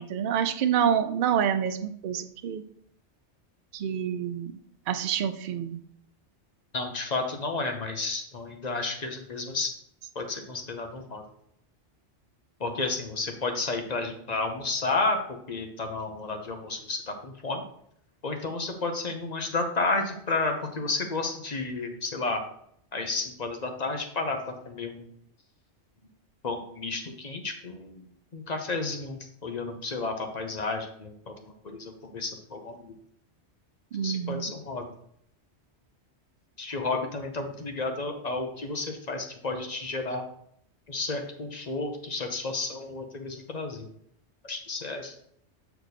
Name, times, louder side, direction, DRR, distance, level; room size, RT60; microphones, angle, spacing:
voice 1, 0.0-2.6 3.7-4.5 4.9-5.8 33.9-34.5, right 8 dB, 60° right, 10 dB, 0.6 m, -27 dB
voice 2, 6.7-9.7 10.1-11.2 12.6-15.2 15.5-17.6 18.2-22.4 22.9-24.4 24.6-25.1 26.4-28.0 28.3-32.9 34.0-34.8 36.6-40.2 40.9-43.9 44.4-45.2, left 3 dB, 40° left, 4 dB, 0.8 m, -32 dB
6.5 x 4.5 x 4.1 m, 0.69 s
omnidirectional pair, 1.2 m